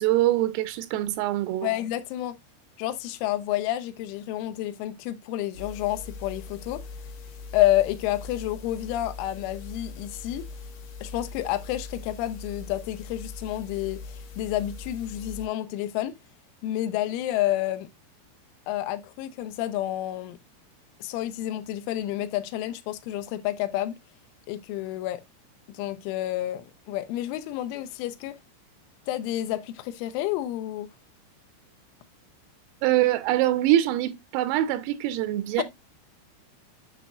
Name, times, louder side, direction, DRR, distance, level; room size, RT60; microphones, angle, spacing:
voice 1, 0.0-1.7 32.8-35.6, right 14 dB, 90° right, 3.5 m, -24 dB
voice 2, 1.6-2.4 2.8-6.8 7.5-10.4 11.0-16.1 16.6-17.9 18.7-20.4 21.0-23.9 24.5-25.2 25.7-28.4 29.1-30.9 35.6-35.7, left 14 dB, 85° left, 3.1 m, -29 dB
sound 1, 5.5-15.5, left 4 dB, 60° left, 3.0 m, -41 dB
8.3 x 6.1 x 2.3 m
omnidirectional pair, 5.8 m